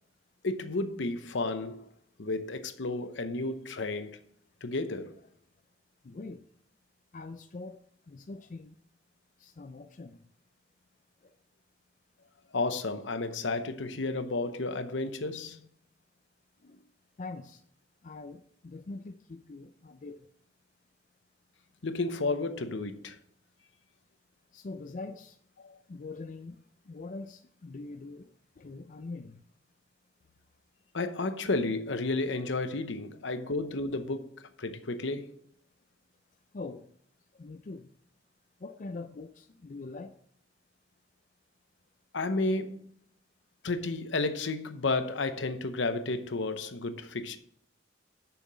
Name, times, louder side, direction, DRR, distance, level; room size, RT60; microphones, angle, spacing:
voice 1, 0.4-1.9 2.2-4.2 4.6-5.2 12.5-15.6 21.8-23.2 25.6-25.8 30.9-35.3 42.1-42.9 43.6-47.4, left 3 dB, 75° left, 0.8 m, -32 dB
voice 2, 6.0-6.5 7.1-8.8 9.4-10.2 11.2-11.4 16.6-16.9 17.2-17.6 18.0-20.3 24.5-25.4 25.9-29.4 36.5-36.9 37.3-38.0 38.6-40.2, left 3 dB, 40° left, 0.4 m, -43 dB
6.9 x 5.8 x 7.4 m
head